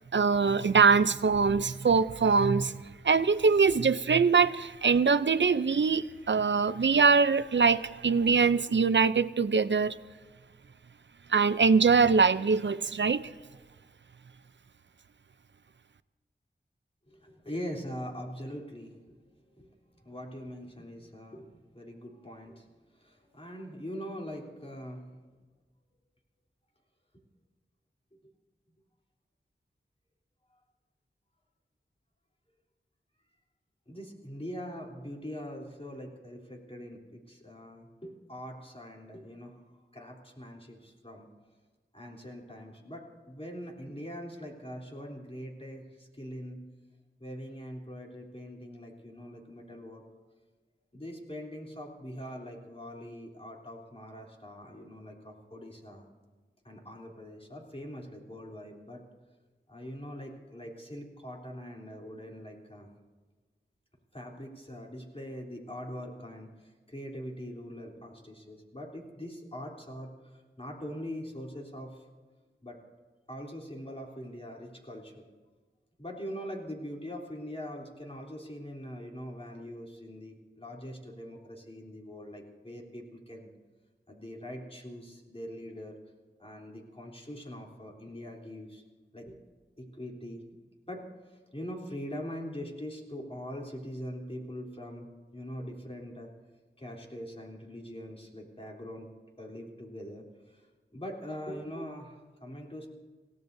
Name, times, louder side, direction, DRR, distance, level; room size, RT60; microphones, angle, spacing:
voice 1, 0.1-2.8 3.0-10.0 11.3-13.2, right 5 dB, 65° right, 14 dB, 0.6 m, -23 dB
voice 2, 17.1-22.7 22.9-25.0 33.9-39.6 39.9-41.3 41.9-46.6 47.2-50.0 50.9-56.1 56.6-59.0 59.7-62.9 64.1-72.0 72.6-72.8 73.3-75.3 76.0-83.5 84.1-85.9 86.4-88.8 89.1-89.4 89.8-90.4 90.9-96.3 96.8-99.1 99.4-100.7 100.9-102.9, equal, 30° left, -1 dB, 3.4 m, -42 dB
27.5 x 17.5 x 2.7 m, 1.4 s
wide cardioid pair, 50°, 20 cm